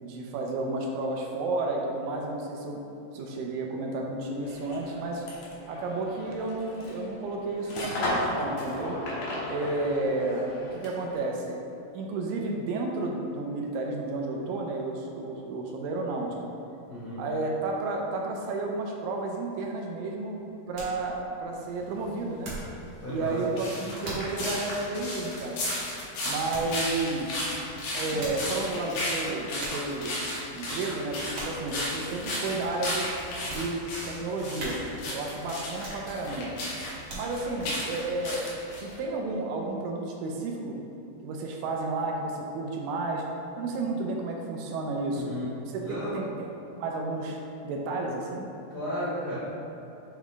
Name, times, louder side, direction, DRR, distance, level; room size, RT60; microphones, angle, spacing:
voice 1, 0.0-2.8 3.1-5.2 5.7-9.0 9.5-11.6 11.9-16.3 17.2-20.4 20.7-22.5 23.1-25.6 26.3-27.5 27.9-30.1 30.5-33.1 33.4-34.8 35.1-36.5 37.1-38.5 38.8-40.8 41.2-43.2 43.6-45.3 45.6-46.5 46.8-47.4 47.6-48.5, right 2 dB, 80° right, 0 dB, 2.2 m, -32 dB
sound 1, 4.4-11.2, left 1 dB, 75° left, 1.4 m, -35 dB
voice 2, 16.9-17.2 23.0-23.4 45.1-45.5 45.8-46.1 48.7-49.3, equal, 55° left, -12 dB, 1.2 m, -34 dB
sound 2, 20.2-22.8 23.2-23.5 24.0-24.4 24.8-24.9 26.5-26.8 27.9-28.6 29.2-29.3 29.6-30.0 30.5-30.8 31.3-31.7 32.2-32.3 32.8-33.7 34.1-34.2 34.6-35.1 35.7-36.4 36.8-37.6 38.0-38.1, right 1 dB, 60° right, 1.1 m, -40 dB
sound 3, 23.2-39.0, left 1 dB, 90° left, 3.0 m, -34 dB
7.2 x 3.5 x 3.7 m, 2.9 s
omnidirectional pair, 4.1 m